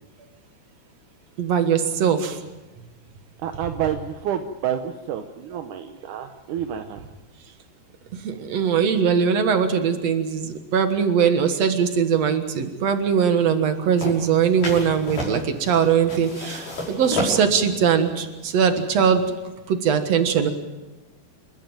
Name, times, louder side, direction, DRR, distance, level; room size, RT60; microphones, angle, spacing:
voice 1, 1.4-2.4 8.2-19.3 19.7-20.5, right 7 dB, 55° right, 8 dB, 2.0 m, -21 dB
voice 2, 3.4-7.0, right 9 dB, 75° right, 6 dB, 1.9 m, -29 dB
sound 1, 14.0-19.3, left 1 dB, 50° left, 7.0 m, -32 dB
28.5 x 13.0 x 9.0 m, 1.1 s
omnidirectional pair, 4.8 m